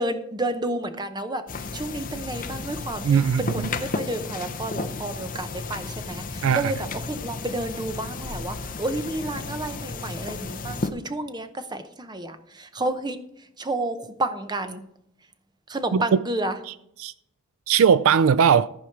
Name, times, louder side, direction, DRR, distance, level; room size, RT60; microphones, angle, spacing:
voice 1, 0.0-1.5 1.7-13.2 13.6-14.9 15.7-16.6, right 2 dB, 20° right, 0.8 m, -30 dB
sound 1, 1.5-10.9, left 3 dB, 40° left, 0.7 m, -33 dB
voice 2, 3.0-3.7 6.4-6.7 15.9-16.2 17.0-17.1 17.7-18.7, right 7 dB, 65° right, 0.3 m, -19 dB
14.0 x 4.9 x 5.9 m
head